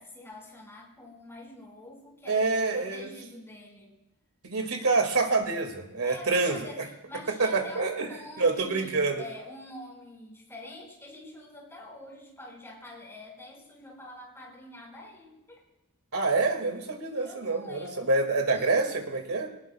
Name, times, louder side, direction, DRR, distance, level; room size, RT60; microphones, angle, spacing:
voice 1, 0.0-3.9 6.0-15.6 17.2-18.1 18.5-19.1, left 1 dB, 10° left, -2 dB, 5.4 m, -46 dB
voice 2, 2.3-3.1 4.4-6.6 7.3-8.1 8.4-9.2 16.1-19.5, right 3 dB, 75° right, 4 dB, 2.2 m, -26 dB
22.0 x 19.0 x 2.3 m, 0.93 s
head